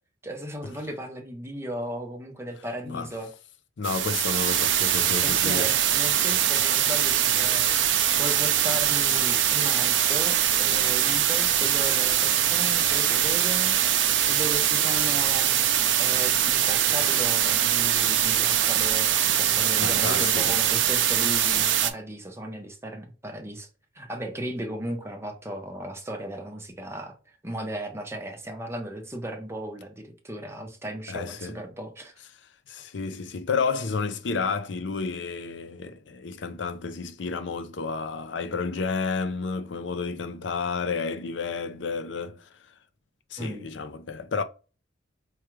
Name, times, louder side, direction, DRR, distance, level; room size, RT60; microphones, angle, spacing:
voice 1, 0.2-3.3 5.2-23.7 23.9-27.2 27.4-32.1 43.4-43.6, right 1 dB, 15° right, 0.7 m, -36 dB
voice 2, 3.8-5.9 19.8-20.6 31.1-31.6 32.7-42.5 43.3-44.4, left 4 dB, 70° left, 0.5 m, -31 dB
sound 1, 3.8-21.9, right 10 dB, 75° right, 0.5 m, -23 dB
4.6 x 2.3 x 3.1 m
head